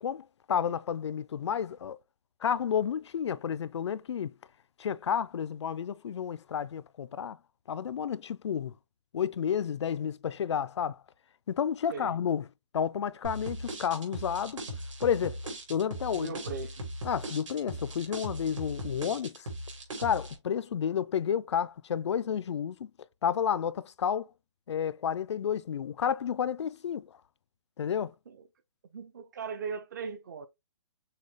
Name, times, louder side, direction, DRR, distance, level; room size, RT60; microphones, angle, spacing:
voice 1, 0.0-2.0 2.4-4.3 4.8-7.4 7.7-8.7 9.1-11.0 11.5-12.4 12.7-14.6 15.0-16.4 17.0-19.5 20.0-22.9 23.2-24.3 24.7-27.1 27.8-28.1, left 8 dB, 65° left, 0.4 m, -31 dB
sound 1, 13.2-20.3, right 1 dB, 75° right, 2.8 m, -39 dB
voice 2, 16.1-16.8 28.3-28.5 28.9-30.5, right 5 dB, 35° right, 0.6 m, -39 dB
6.4 x 2.3 x 3.3 m
hypercardioid pair, 170°, 16 cm